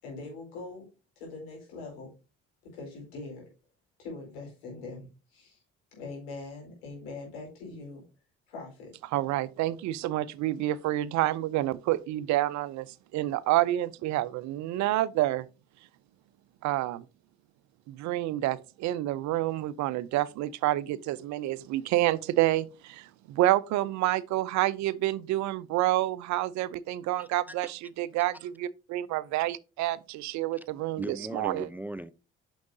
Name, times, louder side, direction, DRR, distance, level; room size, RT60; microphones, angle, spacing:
voice 1, 0.0-0.9 1.2-2.1 2.6-3.5 4.0-5.6 5.9-8.0 8.5-8.9, left 3 dB, 85° left, 4.5 m, -42 dB
voice 2, 9.1-15.5 16.6-17.0 17.9-31.7, right 15 dB, 65° right, 0.6 m, -28 dB
voice 3, 27.2-27.7 30.6-30.7 31.0-32.1, right 1 dB, 5° right, 0.5 m, -39 dB
9.4 x 6.3 x 2.7 m
hypercardioid pair, 45°, 30 cm